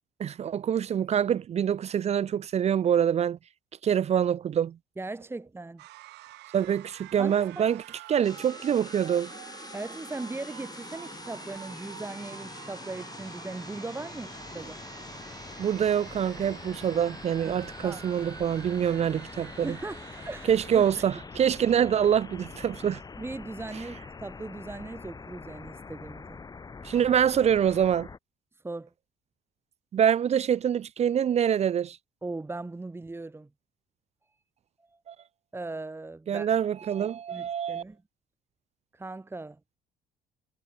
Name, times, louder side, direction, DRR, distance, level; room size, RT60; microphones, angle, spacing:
voice 1, 0.2-3.4 3.8-4.8 6.5-7.8 8.1-9.3 15.6-19.8 20.5-23.0 26.8-28.1 29.9-32.0 35.1-35.2 36.3-37.8, right 9 dB, 40° right, 0.6 m, -25 dB
voice 2, 5.0-5.8 7.2-7.7 9.7-14.8 17.4-17.5 17.8-18.0 19.6-20.9 21.8-22.1 23.2-26.4 28.6-28.9 32.2-33.5 34.9-35.0 35.5-36.5 37.0-38.0 38.9-39.6, right 2 dB, 15° right, 2.0 m, -39 dB
sound 1, 5.8-20.9, right 19 dB, 85° right, 4.8 m, -47 dB
sound 2, 8.2-28.2, left 4 dB, 20° left, 1.3 m, -44 dB
cardioid pair, 110°, 17 cm